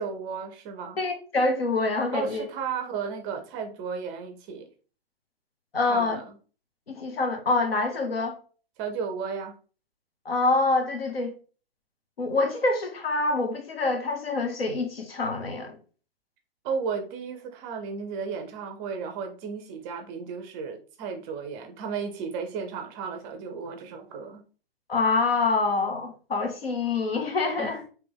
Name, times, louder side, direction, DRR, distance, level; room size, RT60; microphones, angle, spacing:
voice 1, 0.0-1.0 2.1-4.7 5.9-6.4 8.8-9.6 16.6-24.4 27.6-27.8, right 5 dB, 20° right, 0.4 m, -34 dB
voice 2, 1.0-2.4 5.7-6.2 6.9-8.4 10.2-11.3 12.2-15.8 24.9-27.8, left 3 dB, 80° left, 1.0 m, -26 dB
3.3 x 3.0 x 3.3 m
figure-of-eight pair, 115°, 30 cm